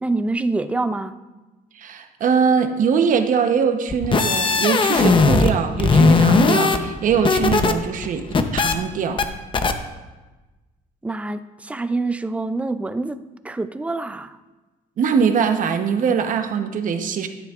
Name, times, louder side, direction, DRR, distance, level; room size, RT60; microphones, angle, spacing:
voice 1, 0.0-1.1 11.0-14.4, right 2 dB, 10° right, 11 dB, 0.4 m, -26 dB
voice 2, 1.7-8.3 8.5-9.2 15.0-17.3, right 6 dB, 50° right, 7 dB, 0.9 m, -21 dB
sound 1, 3.9-5.5 5.8-7.7 8.0-8.7 9.2-9.3 9.5-9.7, left 4 dB, 30° left, 0.8 m, -17 dB
11.5 x 9.9 x 2.5 m, 1.2 s
cardioid pair, 110°, 17 cm